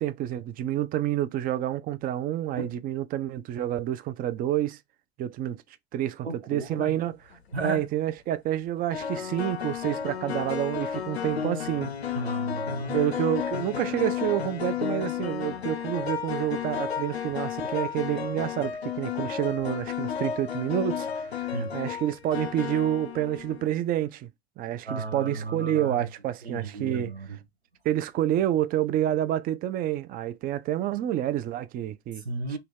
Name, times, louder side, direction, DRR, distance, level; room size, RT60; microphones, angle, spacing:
voice 1, 0.0-4.8 5.2-5.6 5.9-7.2 7.6-11.9 12.9-24.3 24.6-27.1 27.8-32.2, right 12 dB, 30° right, 0.4 m, -28 dB
voice 2, 6.2-6.9 7.5-7.8 12.1-13.1 21.5-21.7 24.9-26.1 26.4-27.4 32.2-32.6, right 3 dB, 85° right, 0.8 m, -34 dB
sound 1, 7.3-7.7 8.9-23.8, left 8 dB, 85° left, 0.5 m, -32 dB
2.9 x 2.8 x 3.3 m
figure-of-eight pair, 70°, 31 cm